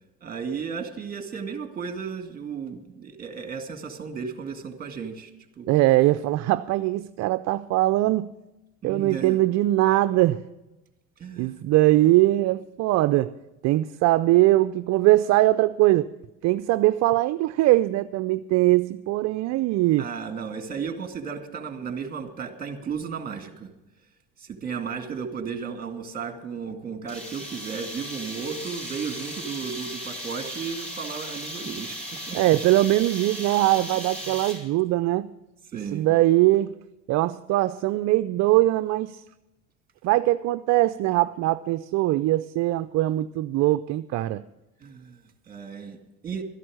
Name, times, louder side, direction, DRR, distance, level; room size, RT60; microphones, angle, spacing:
voice 1, 0.2-5.3 5.6-5.7 8.8-9.4 11.2-11.6 20.0-23.7 24.4-32.4 33.7-34.4 35.7-36.1 44.8-46.4, right 6 dB, 25° right, 2.2 m, -34 dB
voice 2, 5.7-8.3 8.8-10.4 11.4-13.3 13.6-16.1 16.4-20.1 32.3-35.3 35.9-36.7 37.1-39.2 40.0-44.4, right 16 dB, 55° right, 0.5 m, -21 dB
sound 1, 27.1-34.8, right 1 dB, 20° left, 4.1 m, -36 dB
13.0 x 11.0 x 6.4 m
supercardioid pair, 95°, 33 cm